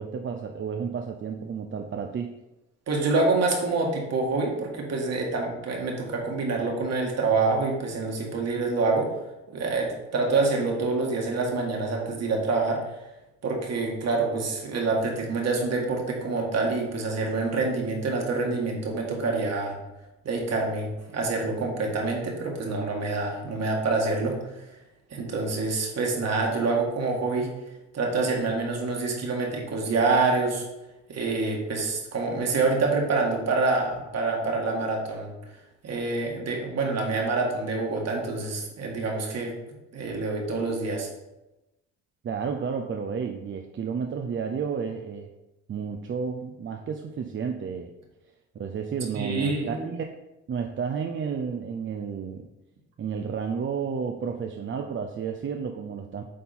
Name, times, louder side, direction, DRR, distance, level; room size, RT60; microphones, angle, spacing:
voice 1, 0.0-2.3 42.2-45.3 45.7-47.9 48.5-50.1 50.5-52.5 53.0-56.2, right 6 dB, 40° right, 4 dB, 0.6 m, -31 dB
voice 2, 2.9-9.1 9.5-13.0 13.4-19.8 20.2-24.8 25.1-27.5 27.9-30.7 31.1-35.3 35.8-39.5 39.9-41.1 49.1-49.9, right 3 dB, 60° right, 0 dB, 1.9 m, -26 dB
8.4 x 3.8 x 4.3 m, 0.97 s
cardioid pair, 90°, 30 cm